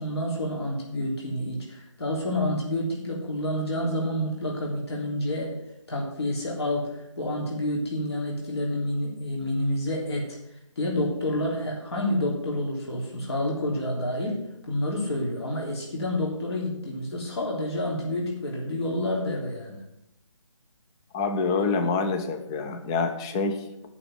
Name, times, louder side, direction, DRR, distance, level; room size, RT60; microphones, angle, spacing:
voice 1, 0.0-5.5 5.9-10.4 10.8-19.8, left 1 dB, 55° left, -2 dB, 3.2 m, -29 dB
voice 2, 21.1-23.9, left 4 dB, 10° left, 8 dB, 0.4 m, -27 dB
10.5 x 5.9 x 7.5 m, 0.83 s
figure-of-eight pair, 155°, 16 cm